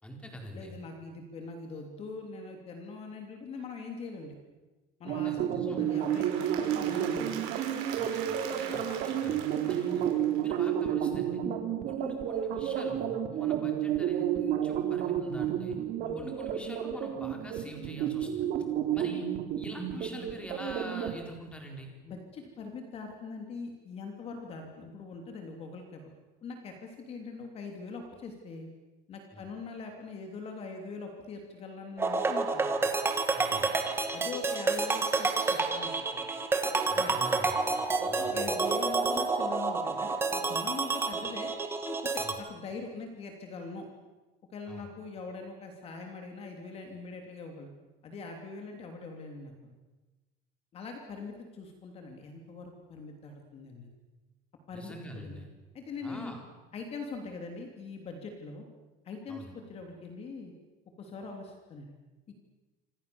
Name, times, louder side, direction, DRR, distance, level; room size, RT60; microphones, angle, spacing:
voice 1, 0.0-0.7 5.1-5.8 8.0-10.1 10.4-11.4 11.8-15.8 16.1-18.5 18.9-19.3 19.5-21.9 29.3-29.5 33.3-33.7 36.9-37.6 38.1-38.5 42.2-42.4 44.7-44.9 54.7-55.5 56.0-56.4 59.3-59.5, equal, 5° left, 2 dB, 4.2 m, -45 dB
voice 2, 0.5-4.4 5.0-7.3 16.0-16.3 18.9-19.2 22.0-26.1 26.4-28.7 29.1-32.9 34.1-36.3 36.9-37.2 38.0-41.5 41.8-43.9 44.5-47.7 48.0-49.7 50.7-53.9 54.7-55.4 55.7-56.3 56.7-58.6 59.0-60.5 61.0-61.9, left 4 dB, 30° left, 3 dB, 3.2 m, -42 dB
sound 1, 5.1-21.2, right 10 dB, 50° right, 3.2 m, -31 dB
Applause / Crowd, 5.8-10.7, right 8 dB, 75° right, 5.7 m, -43 dB
sound 2, 32.0-42.3, right 4 dB, 10° right, 2.2 m, -29 dB
28.5 x 26.5 x 7.2 m, 1.2 s
cardioid pair, 175°, 20 cm